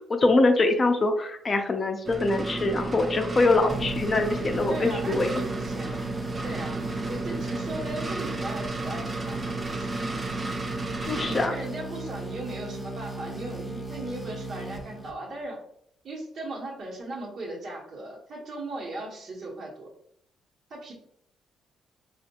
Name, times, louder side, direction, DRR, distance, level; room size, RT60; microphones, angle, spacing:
voice 1, 0.1-5.3 11.0-11.5, left 2 dB, 35° left, 5 dB, 0.6 m, -23 dB
sound 1, 2.1-11.5, right 2 dB, 30° right, 0.4 m, -33 dB
sound 2, 3.7-15.4, right 2 dB, 5° left, 0.8 m, -37 dB
voice 2, 4.7-9.9 11.1-15.6 16.0-19.9 20.7-20.9, right 2 dB, 55° right, -5 dB, 1.2 m, -38 dB
4.3 x 2.4 x 2.9 m, 0.72 s
cardioid pair, 90°, 0 cm